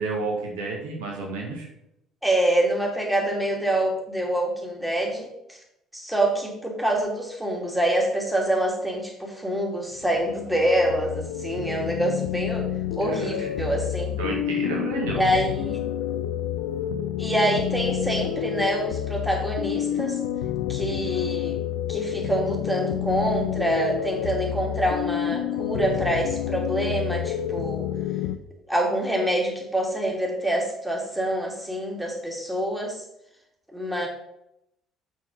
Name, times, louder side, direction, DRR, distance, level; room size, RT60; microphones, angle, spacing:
voice 1, 0.0-1.7 13.1-13.7 14.2-15.2, right 3 dB, 75° right, -1 dB, 1.9 m, -31 dB
voice 2, 2.2-5.6 5.9-12.7 13.0-14.1 15.2-15.8 17.2-20.2 20.7-21.6 21.9-27.9 28.7-33.0 33.7-34.1, right 1 dB, 5° right, -1 dB, 2.8 m, -26 dB
sound 1, 10.0-28.4, left 11 dB, 70° left, 0.4 m, -29 dB
6.2 x 6.0 x 5.4 m, 0.82 s
figure-of-eight pair, 55°, 0 cm